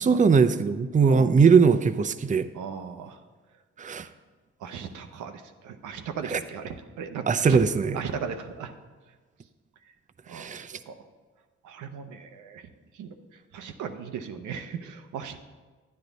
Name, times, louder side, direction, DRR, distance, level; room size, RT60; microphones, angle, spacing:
voice 1, 0.0-2.5 3.8-4.1 6.3-6.4 7.3-8.0 10.3-10.7, right 5 dB, 25° right, 11 dB, 0.5 m, -20 dB
voice 2, 2.5-3.2 4.6-7.6 7.9-8.7 10.3-10.6 10.9-11.0 11.6-12.7 12.9-13.2 13.5-15.4, right 7 dB, 90° right, 6 dB, 0.7 m, -37 dB
10.0 x 9.6 x 4.0 m, 1.4 s
supercardioid pair, 55°, 29 cm